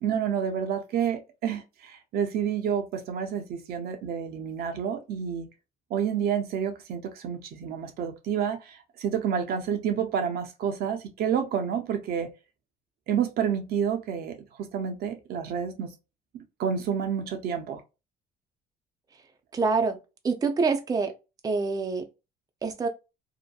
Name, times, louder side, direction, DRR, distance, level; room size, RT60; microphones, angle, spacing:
voice 1, 0.0-5.5 5.9-12.3 13.1-15.9 16.6-17.8, right 8 dB, 65° right, 0.6 m, -29 dB
voice 2, 19.5-20.0 20.2-21.1 21.4-22.0 22.6-22.9, right 4 dB, 20° right, 0.5 m, -25 dB
2.7 x 2.1 x 2.2 m
cardioid pair, 110°, 17 cm